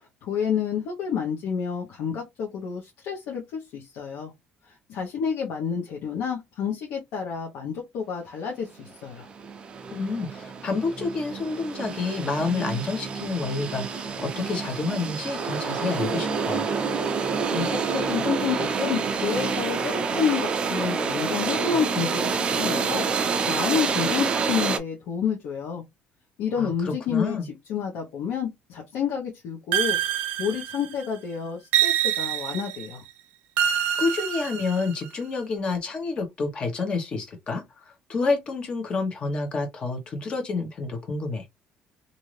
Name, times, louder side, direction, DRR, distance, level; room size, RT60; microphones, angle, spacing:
voice 1, 0.2-4.3 4.7-9.3 17.5-23.0 23.5-25.8 26.4-30.0 30.4-33.0, left 7 dB, 80° left, 0.9 m, -29 dB
sound 1, 8.8-8.9 9.2-24.8, right 5 dB, 30° right, 0.4 m, -28 dB
voice 2, 9.9-16.7 26.6-27.5 34.0-37.8 38.1-41.4, left 3 dB, 35° left, 1.0 m, -29 dB
sound 2, 29.7-31.1 31.7-32.9 33.6-35.1, right 10 dB, 80° right, 0.6 m, -26 dB
2.7 x 2.5 x 3.1 m
cardioid pair, 150°, 3 cm